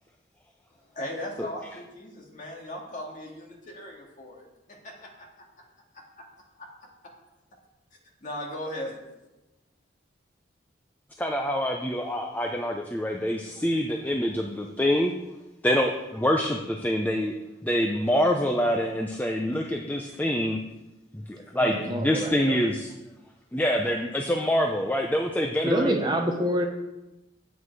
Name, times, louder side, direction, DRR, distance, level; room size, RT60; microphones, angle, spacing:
voice 1, 0.9-5.5 6.2-6.3 6.6-6.7 8.2-8.9, left 1 dB, 45° left, -1 dB, 2.2 m, -38 dB
voice 2, 11.2-15.1 15.6-17.3 17.6-20.6 21.1-22.9 23.5-26.0, equal, 10° left, 2 dB, 0.6 m, -26 dB
voice 3, 21.6-22.6 25.6-26.7, equal, 25° right, 3 dB, 0.9 m, -27 dB
9.8 x 8.2 x 4.7 m, 0.98 s
head